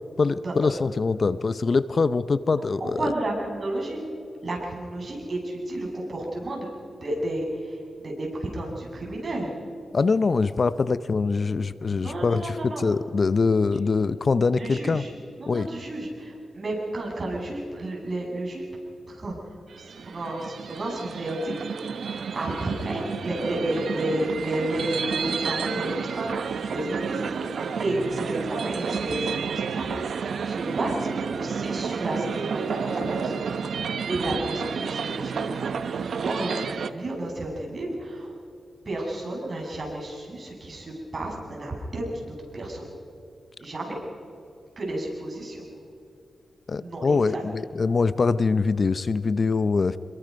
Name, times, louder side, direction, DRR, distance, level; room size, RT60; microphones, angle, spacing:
voice 1, 0.2-3.1 9.9-15.0 15.5-15.7 46.7-50.0, left 4 dB, 50° left, 15 dB, 0.6 m, -23 dB
voice 2, 2.8-4.0 4.4-6.7 7.0-9.5 12.0-12.9 14.6-15.1 15.4-18.6 19.1-21.9 22.3-27.4 27.8-33.8 34.0-38.3 38.8-42.9 43.6-44.0 44.8-45.6 46.8-47.4, right 1 dB, 45° right, -1 dB, 6.6 m, -32 dB
sound 1, 19.7-36.9, right 6 dB, 75° right, 0.9 m, -30 dB
26.5 x 22.0 x 5.3 m, 2.7 s
cardioid pair, 75°, 0 cm